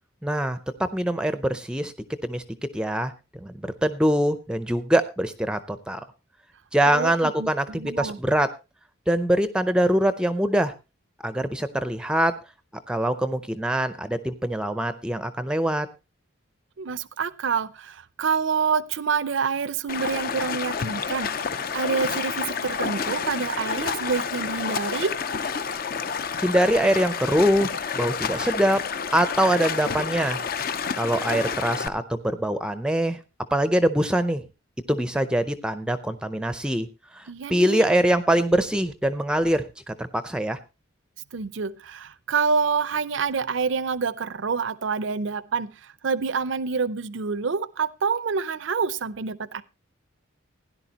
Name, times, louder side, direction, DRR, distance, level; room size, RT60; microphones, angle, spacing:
voice 1, 0.2-1.9 2.2-2.4 2.7-6.0 6.7-8.5 9.1-10.7 11.2-12.4 12.9-15.9 26.4-28.8 29.1-30.4 30.9-33.2 33.5-34.4 34.9-36.9 37.2-40.6, right 1 dB, 5° right, 0.5 m, -23 dB
voice 2, 6.8-8.2 16.8-25.1 37.3-37.9 41.3-49.6, right 5 dB, 65° right, 0.5 m, -27 dB
Stream, 19.9-31.9, left 6 dB, 45° left, 0.5 m, -29 dB
16.5 x 10.5 x 2.9 m
head